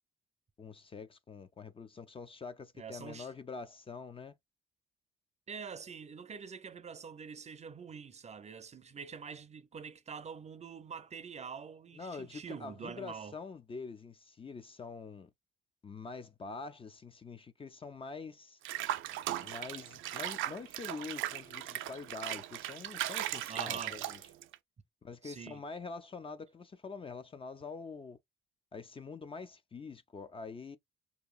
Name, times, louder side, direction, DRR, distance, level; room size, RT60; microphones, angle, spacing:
voice 1, 0.6-4.3 11.9-15.3 15.8-18.6 19.4-24.2 25.0-28.2 28.7-30.8, left 4 dB, 25° left, 0.4 m, -45 dB
voice 2, 2.8-3.3 5.5-13.3 23.5-24.0 25.2-25.6, right 6 dB, 35° right, 0.5 m, -45 dB
Water / Bathtub (filling or washing), 18.6-24.6, right 13 dB, 85° right, 0.4 m, -38 dB
4.6 x 2.8 x 2.3 m
cardioid pair, 90°, 20 cm